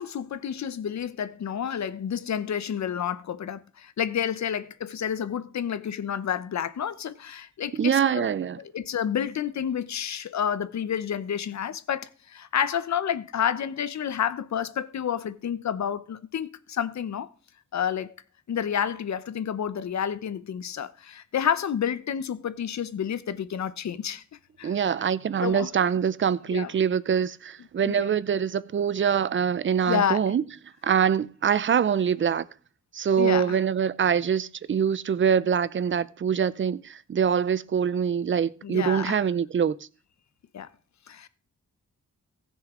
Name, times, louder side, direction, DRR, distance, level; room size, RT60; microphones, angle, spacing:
voice 1, 0.0-8.3 8.6-17.3 17.7-18.1 18.5-24.2 24.6-24.7 25.4-25.7 26.5-26.7 27.9-28.0 29.9-30.2 33.2-33.6 38.6-39.3 40.5-40.7 41.1-41.3, left 8 dB, 65° left, 0.8 m, -29 dB
voice 2, 7.7-8.6 24.6-30.4 30.8-32.5 32.9-39.8, right 7 dB, 40° right, 0.5 m, -24 dB
18.0 x 6.6 x 3.7 m
wide cardioid pair, 150°, 30 cm